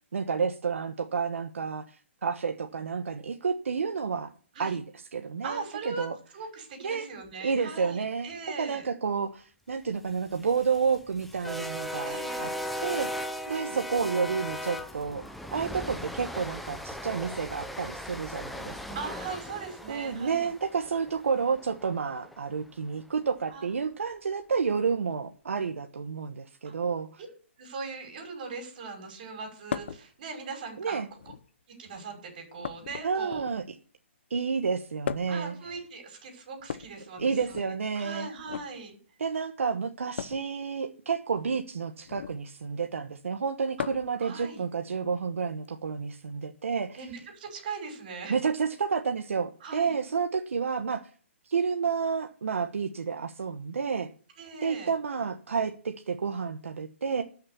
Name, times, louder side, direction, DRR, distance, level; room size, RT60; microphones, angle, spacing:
voice 1, 0.1-4.3 4.6-6.1 6.8-7.1 7.4-8.3 8.6-12.5 12.8-15.2 15.5-18.8 19.9-27.1 30.8-31.1 33.0-33.6 34.3-35.5 37.2-38.3 39.2-47.0 48.3-51.0 51.4-54.1 54.6-57.2, right 5 dB, 80° right, 5 dB, 1.2 m, -30 dB
voice 2, 5.4-6.1 6.3-8.9 12.0-12.6 13.5-13.8 18.9-20.5 23.5-23.7 26.6-26.7 27.6-31.0 31.8-33.4 35.3-37.7 37.9-39.0 43.8-43.9 44.2-44.6 46.9-48.4 49.6-49.9 54.4-54.9, right 4 dB, 40° right, 3 dB, 5.9 m, -40 dB
sound 1, 10.2-22.4, left 1 dB, ahead, 0.6 m, -38 dB
sound 2, 29.7-30.0 31.1-31.6 32.6-33.7 35.0-35.5 36.6-37.7 38.4-38.7 40.2-40.5 42.0-42.4 43.8-44.2 45.6-45.7 47.0-47.1, left 7 dB, 55° left, 0.9 m, -37 dB
13.0 x 6.6 x 6.9 m, 0.42 s
hypercardioid pair, 160°, 7 cm